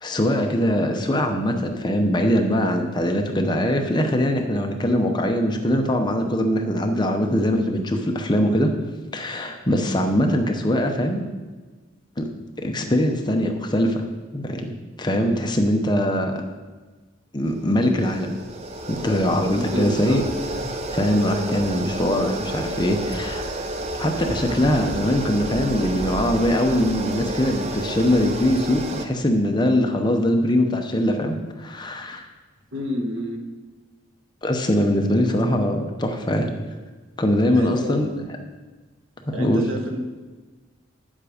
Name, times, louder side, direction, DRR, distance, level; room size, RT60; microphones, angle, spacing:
voice 1, 0.0-8.7 9.1-11.3 12.2-12.3 12.6-14.0 14.3-14.7 15.0-16.4 17.3-18.4 18.9-20.2 20.9-23.4 24.0-32.3 34.4-36.5 37.2-38.2 39.3-39.6, left 1 dB, 20° left, 4 dB, 0.8 m, -22 dB
sound 1, 17.4-29.0, right 1 dB, 30° right, 0.6 m, -31 dB
voice 2, 19.5-20.2 32.7-33.4 37.5-38.0 39.3-40.0, equal, 85° right, 1 dB, 1.6 m, -28 dB
9.3 x 7.4 x 5.0 m, 1.3 s
head